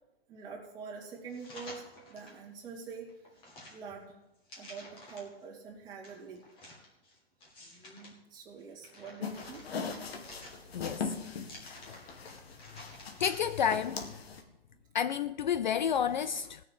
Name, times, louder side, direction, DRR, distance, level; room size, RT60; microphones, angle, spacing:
voice 1, 0.3-3.1 3.7-4.2 4.6-6.4 8.3-9.7, right 5 dB, 15° right, 2.6 m, -45 dB
sound 1, 1.3-2.4 2.9-5.4 6.0-8.1 8.6-10.9 11.4-13.7 14.1-14.2, left 1 dB, 15° left, 2.2 m, -51 dB
sound 2, 9.2-14.4, left 5 dB, 75° left, 2.1 m, -40 dB
voice 2, 10.7-11.1 11.6-12.0 13.2-14.0 14.9-16.6, left 8 dB, 50° left, 0.4 m, -30 dB
16.0 x 6.7 x 7.7 m
hypercardioid pair, 165°, 31 cm